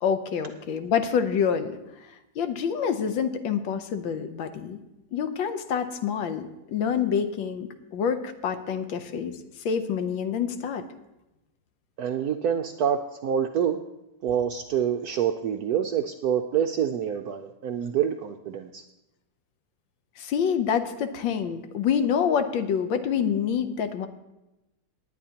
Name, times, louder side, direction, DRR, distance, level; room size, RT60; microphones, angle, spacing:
voice 1, 0.0-1.8 2.4-4.8 5.1-9.4 9.6-10.8 20.2-24.1, left 7 dB, 75° left, 9 dB, 1.5 m, -27 dB
voice 2, 12.0-13.8 14.2-18.8, right 8 dB, 75° right, 5 dB, 0.8 m, -26 dB
19.0 x 9.4 x 2.9 m, 0.96 s
omnidirectional pair, 2.1 m